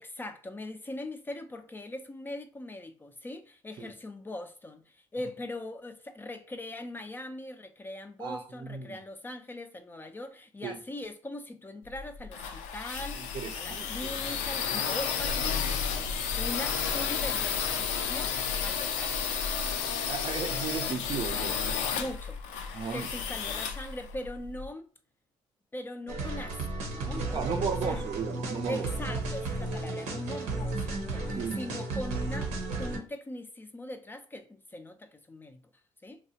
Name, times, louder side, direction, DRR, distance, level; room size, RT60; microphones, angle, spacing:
voice 1, 0.0-13.3 13.6-19.3 21.9-22.4 22.9-24.9 25.7-28.0 28.7-32.5 32.8-35.6 36.0-36.2, left 1 dB, 20° left, 0.4 m, -41 dB
voice 2, 8.2-9.0 10.6-10.8 13.2-14.1 20.1-21.8 22.7-23.1 27.1-28.9 31.3-31.6, right 6 dB, 45° right, 0.4 m, -35 dB
sound 1, 11.9-24.7, left 6 dB, 80° left, 0.4 m, -32 dB
sound 2, 26.1-33.0, right 2 dB, 80° right, 0.7 m, -34 dB
2.8 x 2.0 x 2.7 m
supercardioid pair, 75°, 12 cm